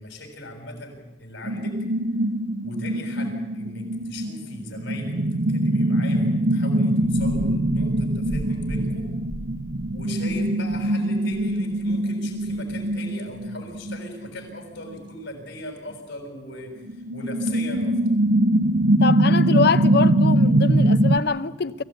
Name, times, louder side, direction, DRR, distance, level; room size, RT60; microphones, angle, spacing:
voice 1, 0.0-1.8 2.6-9.1 9.9-18.0, left 1 dB, 80° left, 7.0 m, -38 dB
sound 1, 1.4-14.3 14.9-15.0 16.8-21.2, right 1 dB, 80° right, 1.0 m, -22 dB
voice 2, 19.0-21.8, left 4 dB, 60° left, 0.8 m, -24 dB
24.5 x 16.0 x 9.3 m
head